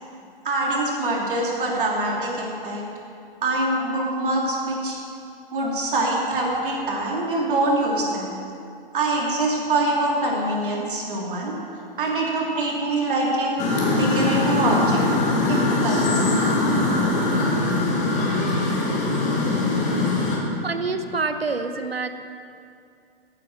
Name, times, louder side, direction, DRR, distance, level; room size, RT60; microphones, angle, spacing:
voice 1, 0.4-2.8 3.4-5.0 5.5-8.3 8.9-11.6 12.0-13.5 13.9-15.0 15.5-16.3, right 2 dB, 60° right, -2 dB, 3.3 m, -24 dB
sound 1, 13.6-20.4, left 2 dB, 25° left, 2.5 m, -22 dB
voice 2, 20.6-22.1, right 4 dB, 80° right, 9 dB, 1.0 m, -26 dB
14.5 x 9.2 x 6.2 m, 2.5 s
figure-of-eight pair, 110°, 30 cm